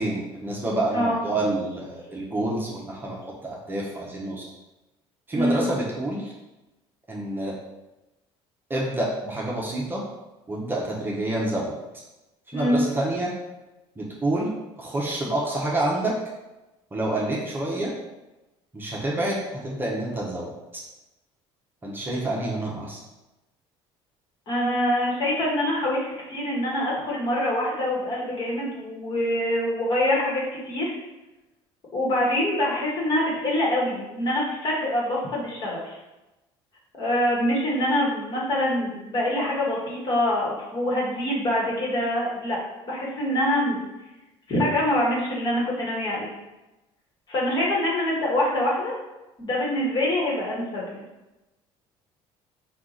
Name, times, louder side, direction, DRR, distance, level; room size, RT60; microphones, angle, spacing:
voice 1, 0.0-4.5 5.3-6.3 7.1-7.6 8.7-10.0 10.5-11.7 12.5-13.3 14.0-14.5 14.8-16.2 16.9-17.9 18.7-20.8 21.8-23.0, right 1 dB, 20° right, -4 dB, 0.9 m, -28 dB
voice 2, 24.5-30.9 31.9-36.0 36.9-42.6 42.8-43.9 44.5-46.3 47.3-48.9 49.4-51.0, left 1 dB, 40° left, -4 dB, 1.4 m, -25 dB
4.6 x 2.5 x 3.9 m, 1.0 s
cardioid pair, 125°, 11 cm